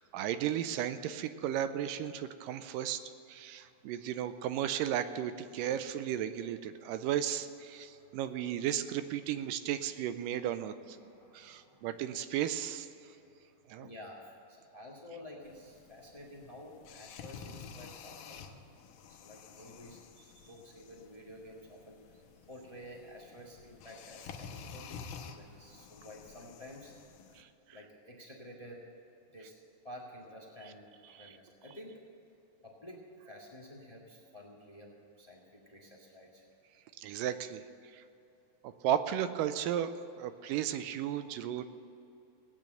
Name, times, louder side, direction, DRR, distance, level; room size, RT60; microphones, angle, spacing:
voice 1, 0.0-3.0 3.3-11.0 11.3-12.9 13.7-13.9 27.4-27.5 31.1-31.4 37.0-37.6 37.9-38.0 38.6-39.9 40.2-41.6, right 10 dB, 80° right, 11 dB, 2.1 m, -34 dB
voice 2, 3.5-3.9 7.7-8.2 11.0-12.0 13.1-18.4 19.1-20.0 20.4-22.0 22.5-26.9 27.7-28.8 29.3-29.5 29.8-32.0 32.6-36.4, left 1 dB, 35° left, -1 dB, 0.5 m, -51 dB
sound 1, 15.4-27.4, left 6 dB, 85° left, 2.7 m, -50 dB
17.0 x 9.3 x 7.7 m, 2.8 s
omnidirectional pair, 4.1 m